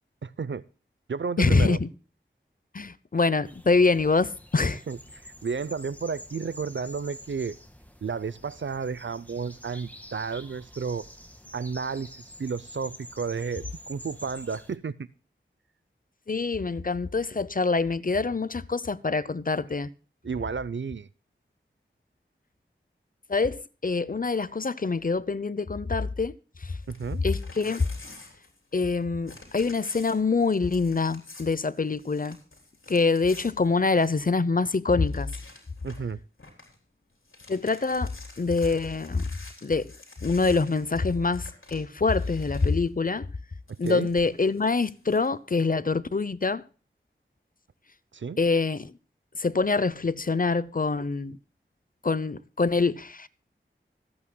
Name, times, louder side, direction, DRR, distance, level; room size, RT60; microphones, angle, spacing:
voice 1, 0.2-0.6 1.1-1.8 4.9-7.6 8.0-11.0 11.5-12.1 12.4-15.1 20.2-21.1 26.9-27.2 35.8-36.2 43.8-44.1 48.1-48.4, right 5 dB, 70° right, 0.6 m, -32 dB
voice 2, 1.4-1.9 2.7-4.8 16.3-19.9 23.3-26.3 27.2-27.8 28.7-32.4 32.9-35.3 37.5-38.1 38.4-39.3 39.6-39.9 40.2-43.3 43.8-46.6 48.4-48.9 49.4-51.4 52.0-53.3, left 4 dB, 45° left, 0.7 m, -25 dB
sound 1, 3.4-14.8, left 1 dB, 10° left, 1.7 m, -47 dB
Crumpling crinkling / Tearing, 26.8-29.0 29.2-34.4 34.7-34.8 35.1-36.1 36.4-36.8 37.1-42.9 43.7-45.3, left 2 dB, 85° left, 3.7 m, -49 dB
25.5 x 8.6 x 2.2 m
wide cardioid pair, 55°, 20 cm